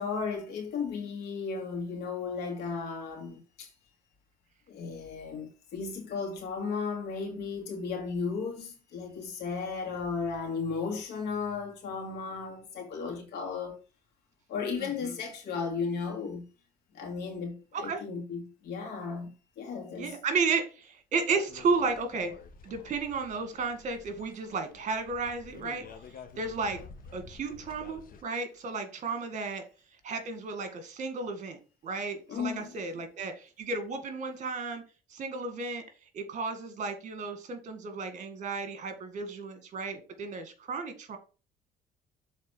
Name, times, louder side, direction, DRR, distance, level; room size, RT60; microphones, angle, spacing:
voice 1, 0.0-3.7 4.7-13.8 14.5-16.4 16.9-20.1 32.3-32.8, left 5 dB, 80° left, 2.7 m, -35 dB
voice 2, 14.8-15.1 17.8-18.0 20.0-22.3 22.6-25.9 26.4-26.8 27.1-29.6 30.0-31.6 31.8-34.8 35.1-35.8 36.1-41.2, right 4 dB, 45° right, 2.1 m, -33 dB
sound 1, 21.5-28.2, left 5 dB, 55° left, 1.3 m, -50 dB
7.3 x 4.0 x 6.3 m
cardioid pair, 110°, 17 cm